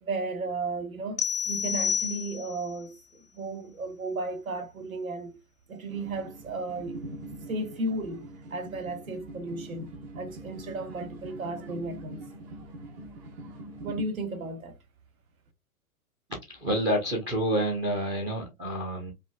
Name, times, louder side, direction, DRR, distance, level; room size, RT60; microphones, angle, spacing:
voice 1, 0.0-3.0 3.3-5.4 5.7-7.0 7.5-12.2 13.8-14.8, right 2 dB, 65° right, 1.2 m, -34 dB
sound 1, 1.2-2.7, left 7 dB, 85° left, 0.6 m, -29 dB
sound 2, 5.9-14.0, right 1 dB, 45° right, 1.2 m, -43 dB
voice 2, 16.5-19.1, equal, 10° right, 0.6 m, -28 dB
4.9 x 2.5 x 2.2 m
figure-of-eight pair, 110°, 44 cm